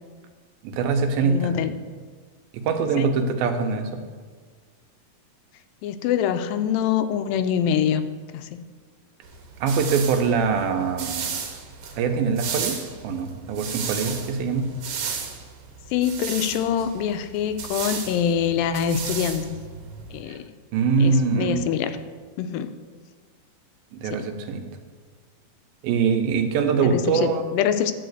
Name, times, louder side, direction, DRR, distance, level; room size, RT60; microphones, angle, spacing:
voice 1, 0.6-1.5 2.5-3.9 9.6-11.4 12.0-12.8 13.0-14.6 20.3-20.4 20.7-21.6 23.9-24.6 25.8-27.5, right 5 dB, 85° right, 5 dB, 2.7 m, -23 dB
voice 2, 1.2-1.8 3.0-3.1 5.8-8.5 15.9-19.6 20.1-20.5 21.0-22.0 22.4-22.7 24.0-24.2 26.9-27.9, left 8 dB, 80° left, 10 dB, 2.3 m, -25 dB
sound 1, 9.2-20.2, right 6 dB, 70° right, 2.6 m, -34 dB
12.0 x 4.8 x 7.9 m, 1.5 s
omnidirectional pair, 4.1 m